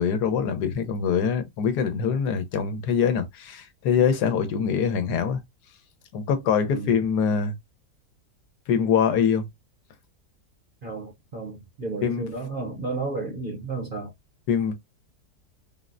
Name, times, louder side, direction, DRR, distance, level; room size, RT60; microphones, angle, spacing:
voice 1, 0.0-5.4 6.1-7.5 8.7-9.5 12.0-12.2 14.5-14.7, left 7 dB, 80° left, 1.2 m, -24 dB
voice 2, 6.7-7.0 10.8-14.1, right 3 dB, 45° right, 0.7 m, -32 dB
3.6 x 2.1 x 2.4 m
omnidirectional pair, 1.7 m